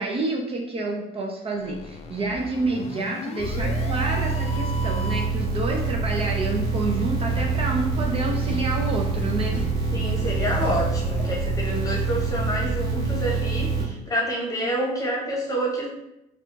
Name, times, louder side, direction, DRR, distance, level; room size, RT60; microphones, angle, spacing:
voice 1, 0.0-9.6, right 2 dB, 35° right, 0 dB, 0.5 m, -28 dB
sound 1, 1.5-5.5, left 4 dB, 40° left, 0.4 m, -37 dB
sound 2, 3.4-13.8, right 4 dB, 55° right, 1.4 m, -26 dB
sound 3, 7.3-11.8, equal, 5° right, 1.1 m, -35 dB
voice 2, 9.9-15.9, equal, 20° left, -3 dB, 1.0 m, -28 dB
4.8 x 2.4 x 2.6 m, 0.86 s
cardioid pair, 110°, 17 cm